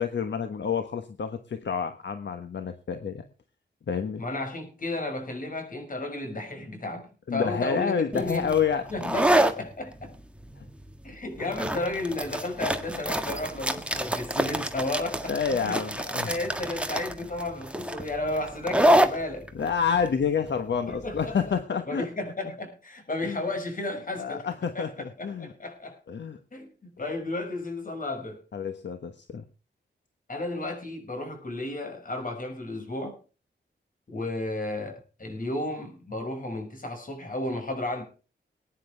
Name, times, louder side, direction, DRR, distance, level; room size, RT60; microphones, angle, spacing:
voice 1, 0.0-3.2 3.9-4.2 7.3-9.1 10.6-10.7 11.4-11.5 15.3-16.3 19.5-22.1 23.2-23.4 24.2-25.5 26.1-26.4 28.5-29.4, left 6 dB, 75° left, 1.3 m, -29 dB
voice 2, 4.2-8.5 8.9-10.1 11.0-19.5 20.9-21.5 21.9-24.5 24.7-26.0 26.5-28.4 30.3-33.2 34.1-38.0, left 2 dB, 50° left, 6.2 m, -33 dB
sound 1, 8.1-21.5, right 1 dB, 5° right, 1.7 m, -27 dB
21.5 x 10.0 x 3.5 m
wide cardioid pair, 100°, 18 cm